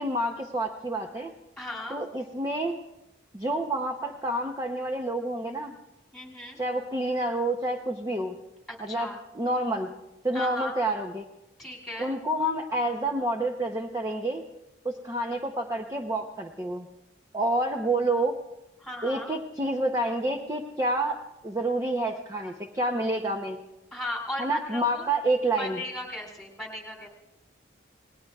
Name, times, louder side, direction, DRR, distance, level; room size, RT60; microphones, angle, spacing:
voice 1, 0.0-1.3 1.9-2.8 3.3-5.7 6.6-8.4 8.8-9.9 10.2-11.3 12.0-14.4 14.8-16.9 17.3-18.4 19.0-21.2 21.4-23.6 24.4-25.8, right 1 dB, 15° right, 3 dB, 0.7 m, -28 dB
voice 2, 1.6-2.0 6.1-6.6 8.7-9.2 10.3-10.7 11.6-12.1 18.8-19.3 23.9-25.0 25.6-27.1, left 1 dB, ahead, -1 dB, 2.8 m, -36 dB
27.5 x 19.5 x 2.4 m, 0.94 s
head